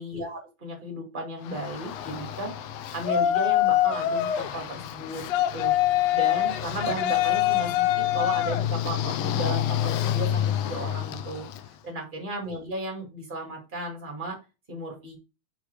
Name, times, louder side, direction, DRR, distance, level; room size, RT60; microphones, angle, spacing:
voice 1, 0.0-2.5 2.9-5.2 5.5-5.7 6.1-11.4 11.8-14.4 14.7-15.2, right 1 dB, 20° right, 1 dB, 2.1 m, -34 dB
Yell, 1.5-11.7, left 12 dB, 75° left, 1.5 m, -26 dB
5.4 x 4.6 x 4.6 m, 0.28 s
omnidirectional pair, 3.4 m